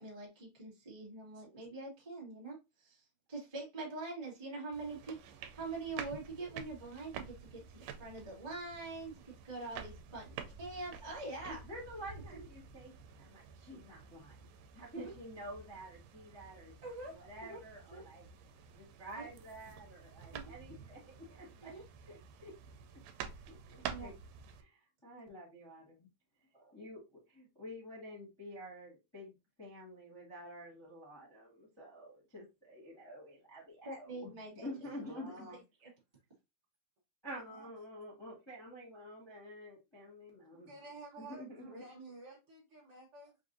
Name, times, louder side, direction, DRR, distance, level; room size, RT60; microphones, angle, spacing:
voice 1, 0.0-3.0 3.3-11.6 16.8-17.6 17.9-18.0 19.1-19.3 20.3-20.4 21.6-21.8 23.9-24.1 33.8-34.7, right 3 dB, 35° right, 0.4 m, -44 dB
sound 1, 4.7-24.6, right 7 dB, 90° right, 2.2 m, -50 dB
voice 2, 11.4-14.5 14.7-16.7 17.1-18.3 18.8-21.7 22.1-22.5 23.4-24.1 24.6-26.1 26.5-29.3 29.6-35.5 37.2-40.7 41.2-41.8, equal, 35° left, 0.4 m, -49 dB
voice 3, 34.8-35.6 37.5-37.7 40.5-43.4, right 2 dB, 60° right, 1.6 m, -52 dB
5.3 x 2.5 x 2.6 m
omnidirectional pair, 3.7 m